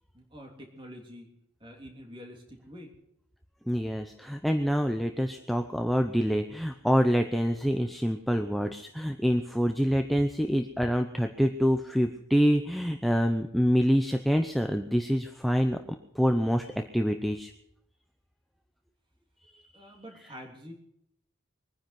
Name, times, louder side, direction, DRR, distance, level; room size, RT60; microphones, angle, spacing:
voice 1, 0.1-1.3 1.6-2.9 19.7-20.7, equal, 25° right, 2 dB, 3.3 m, -46 dB
voice 2, 3.7-15.8 16.1-16.7 16.9-17.5, equal, ahead, 5 dB, 0.7 m, -26 dB
22.5 x 10.0 x 6.0 m, 0.77 s
head